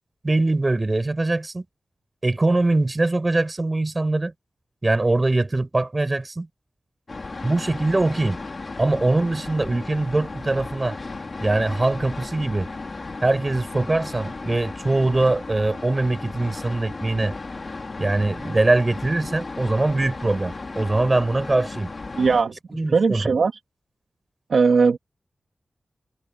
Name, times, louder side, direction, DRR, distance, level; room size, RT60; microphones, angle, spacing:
voice 1, 0.2-1.6 2.2-4.3 4.8-6.5 7.4-8.4 8.8-10.9 11.4-12.7 13.2-17.3 18.0-21.9 22.7-23.3, right 2 dB, 30° right, 6.8 m, -22 dB
sound 1, 7.1-22.4, left 3 dB, 45° left, 2.8 m, -35 dB
voice 2, 22.2-23.5 24.5-25.0, right 5 dB, 75° right, 1.6 m, -19 dB
open air
wide cardioid pair, 95°, 0 cm